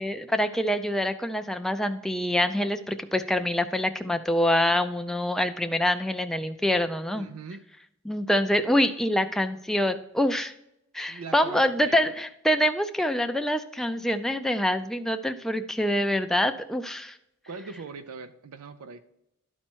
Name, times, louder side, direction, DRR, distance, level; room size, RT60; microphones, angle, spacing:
voice 1, 0.0-7.3 8.1-10.5 10.9-17.2, left 1 dB, ahead, 7 dB, 0.3 m, -25 dB
voice 2, 7.1-7.6 11.1-12.1 17.5-19.0, right 4 dB, 85° right, 11 dB, 0.5 m, -40 dB
12.0 x 4.3 x 4.5 m, 0.82 s
head